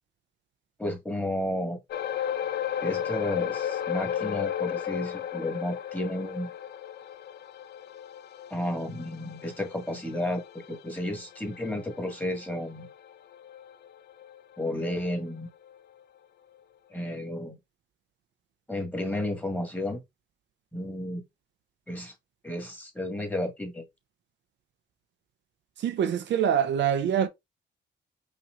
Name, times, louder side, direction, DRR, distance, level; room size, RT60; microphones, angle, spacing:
voice 1, 0.8-1.8 2.8-6.5 8.5-12.9 14.6-15.5 16.9-17.6 18.7-20.0 20.7-21.2 21.9-22.1 22.4-23.8, left 1 dB, 10° left, 1.7 m, -32 dB
sound 1, 1.9-14.6 14.9-15.1 15.7-15.8, left 10 dB, 55° left, 0.4 m, -35 dB
voice 2, 25.8-27.3, right 8 dB, 65° right, 0.6 m, -25 dB
5.7 x 3.1 x 2.5 m
cardioid pair, 90°, 20 cm